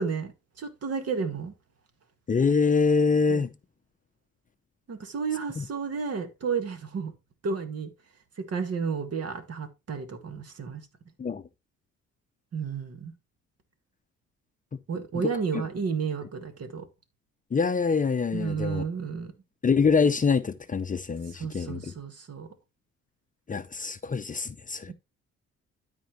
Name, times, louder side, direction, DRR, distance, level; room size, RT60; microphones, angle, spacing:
voice 1, 0.0-1.5 3.3-3.4 4.9-7.1 7.4-7.9 8.4-10.8 12.5-13.1 14.9-16.9 18.3-19.3 21.4-22.5, right 5 dB, 55° right, 1.9 m, -32 dB
voice 2, 2.3-3.5 5.6-5.7 11.2-11.4 14.7-14.8 17.5-18.8 19.6-21.8 23.5-24.9, left 5 dB, 25° left, 0.6 m, -25 dB
12.5 x 4.5 x 3.1 m
cardioid pair, 90°, 30 cm